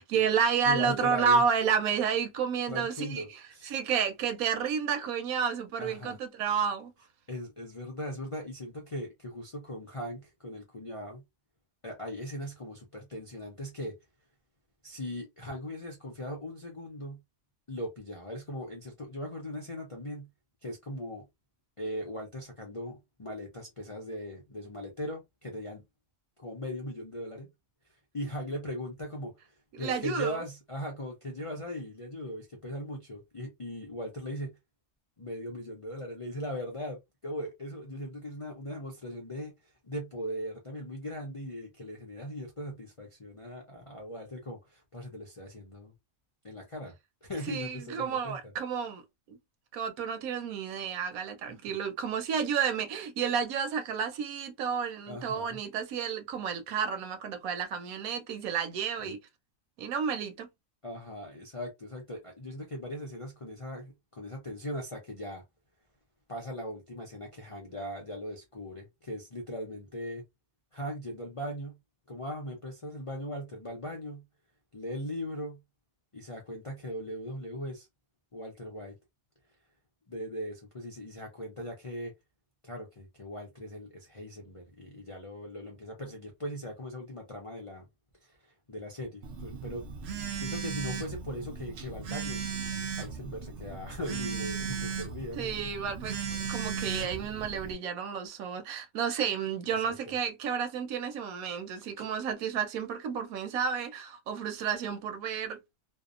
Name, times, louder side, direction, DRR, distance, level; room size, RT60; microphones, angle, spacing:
voice 1, 0.0-3.2 3.6-6.9 29.7-30.4 47.5-49.0 49.3-49.4 49.7-59.2 59.8-60.5 95.4-105.6, right 7 dB, 90° right, 1.1 m, -31 dB
voice 2, 0.6-1.4 2.7-3.7 5.8-6.2 7.3-11.2 11.8-13.9 14.8-17.2 17.7-20.3 20.6-21.2 21.8-25.8 26.4-27.5 28.1-34.6 35.2-45.9 46.4-46.9 47.2-48.5 51.6-51.7 55.1-55.6 59.0-59.1 60.8-65.4 66.3-70.2 70.7-71.8 72.1-74.2 74.7-75.6 76.1-77.9 78.3-78.9 80.1-82.1 82.6-87.9 88.2-92.4 92.9-95.5 99.8-100.0 101.8-102.0, equal, 50° left, 0.3 m, -39 dB
Telephone, 89.2-97.7, right 6 dB, 65° right, 0.7 m, -36 dB
2.7 x 2.0 x 2.4 m
omnidirectional pair, 1.5 m